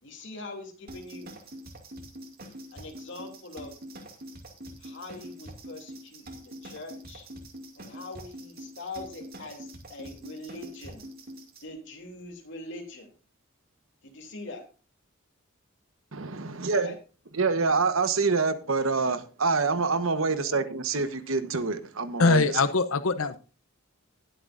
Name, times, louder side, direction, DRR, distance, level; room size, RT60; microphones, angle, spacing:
voice 1, 0.0-1.3 2.7-3.7 4.8-7.3 7.8-11.0 11.6-13.1 14.0-14.6 16.7-17.0 20.3-20.6, left 2 dB, 60° left, 3.0 m, -42 dB
sound 1, 0.9-11.6, right 1 dB, 50° right, 2.4 m, -44 dB
voice 2, 16.1-17.0 17.3-22.4, right 4 dB, 75° right, 1.2 m, -26 dB
voice 3, 22.2-23.4, left 4 dB, 80° left, 0.8 m, -22 dB
19.5 x 7.8 x 2.6 m
head